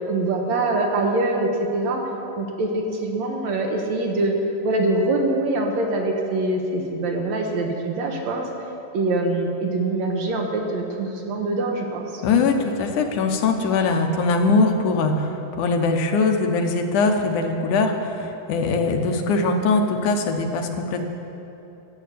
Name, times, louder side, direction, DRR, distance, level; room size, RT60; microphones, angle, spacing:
voice 1, 0.0-2.0 2.4-4.4 4.6-8.5 8.9-12.2, right 2 dB, 60° right, 1 dB, 2.5 m, -24 dB
voice 2, 12.2-21.0, left 3 dB, 75° left, 4 dB, 2.5 m, -21 dB
14.0 x 8.1 x 8.4 m, 3.0 s
omnidirectional pair, 3.7 m